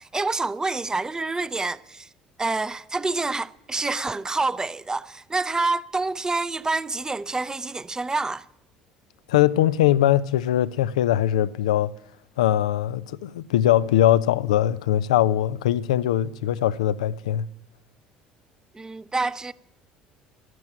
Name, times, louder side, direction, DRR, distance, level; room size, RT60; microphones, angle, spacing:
voice 1, 0.0-2.1 2.4-8.5 18.7-19.5, right 3 dB, 20° right, 0.7 m, -27 dB
voice 2, 9.3-11.9 12.4-17.5, left 12 dB, 80° left, 0.5 m, -21 dB
12.5 x 10.5 x 8.7 m
hypercardioid pair, 60°, 4 cm